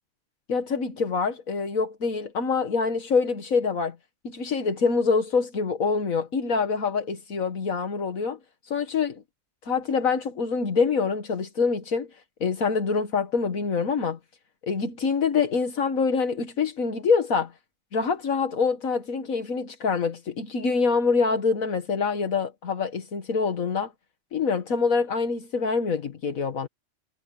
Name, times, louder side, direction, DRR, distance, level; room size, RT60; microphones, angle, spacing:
voice 1, 0.5-4.0 4.2-8.4 8.7-9.2 9.7-12.1 12.4-14.2 14.6-17.5 17.9-23.9 24.3-26.7, left 5 dB, 75° left, 1.9 m, -25 dB
omnidirectional pair, 1.4 m